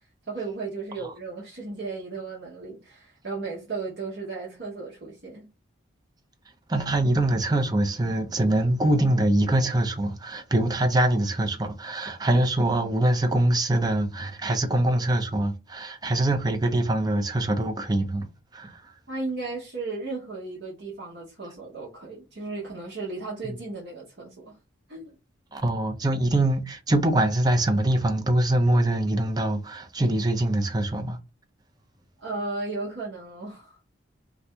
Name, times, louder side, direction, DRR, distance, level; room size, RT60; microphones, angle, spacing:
voice 1, 0.3-5.5 19.1-24.6 24.9-25.1 32.2-33.8, right 3 dB, 65° right, 0.9 m, -35 dB
voice 2, 6.7-18.3 18.5-18.8 25.5-31.2, right 1 dB, 20° right, 0.5 m, -24 dB
2.8 x 2.5 x 3.3 m
head